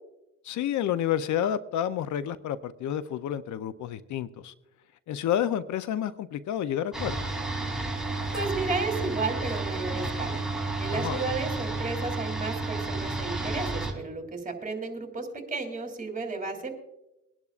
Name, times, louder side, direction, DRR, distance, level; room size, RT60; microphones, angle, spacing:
voice 1, 0.4-4.5 5.1-7.4 10.9-11.2, left 10 dB, 70° left, 13 dB, 0.6 m, -30 dB
sound 1, 6.9-13.9, right 2 dB, ahead, 3.5 m, -31 dB
voice 2, 8.3-10.4 10.8-16.7, right 3 dB, 25° right, 4 dB, 3.0 m, -33 dB
22.5 x 11.0 x 2.5 m, 0.94 s
cardioid pair, 90°, 30 cm